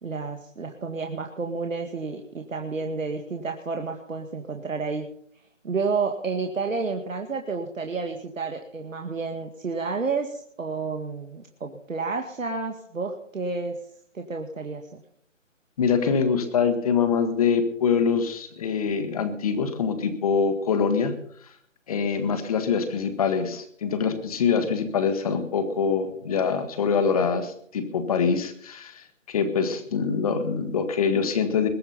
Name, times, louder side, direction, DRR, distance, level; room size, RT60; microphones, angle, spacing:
voice 1, 0.0-5.1 5.6-13.8 14.1-15.0, right 4 dB, 80° right, 4 dB, 2.0 m, -30 dB
voice 2, 15.8-21.1 21.9-31.7, left 6 dB, 30° left, 10 dB, 1.6 m, -24 dB
21.5 x 8.7 x 5.7 m, 0.64 s
figure-of-eight pair, 160°, 38 cm